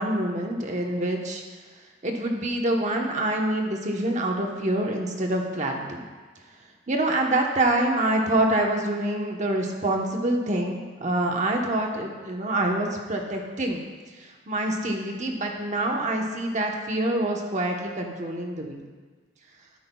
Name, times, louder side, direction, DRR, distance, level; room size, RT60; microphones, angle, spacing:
voice 1, 0.0-1.4 2.0-6.0 6.9-13.8 14.2-18.8, right 1 dB, 40° right, 1 dB, 1.0 m, -26 dB
12.5 x 9.4 x 2.3 m, 1.4 s
head